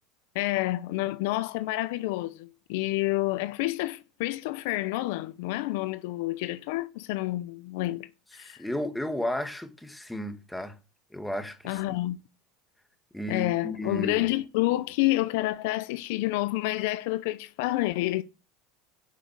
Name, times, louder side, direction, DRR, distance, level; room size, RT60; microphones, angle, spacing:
voice 1, 0.3-8.7 11.6-12.2 13.3-18.2, left 18 dB, 70° left, 0.7 m, -29 dB
voice 2, 8.4-10.7 11.1-12.0 13.1-14.3, left 1 dB, 5° left, 2.1 m, -33 dB
10.5 x 6.4 x 7.0 m
hypercardioid pair, 100°, 0 cm